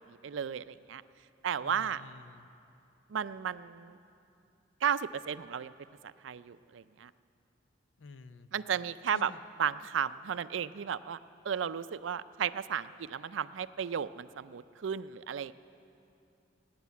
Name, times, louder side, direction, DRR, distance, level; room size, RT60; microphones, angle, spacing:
voice 1, 0.1-1.0 1.4-2.0 3.1-4.0 4.8-5.7 6.0-7.1 8.5-9.3 9.6-11.2 11.4-15.5, right 8 dB, 80° right, 15 dB, 0.4 m, -34 dB
voice 2, 1.6-2.5 8.0-8.5 9.1-9.4, left 4 dB, 85° left, 12 dB, 0.6 m, -50 dB
18.0 x 9.7 x 8.3 m, 2.6 s
head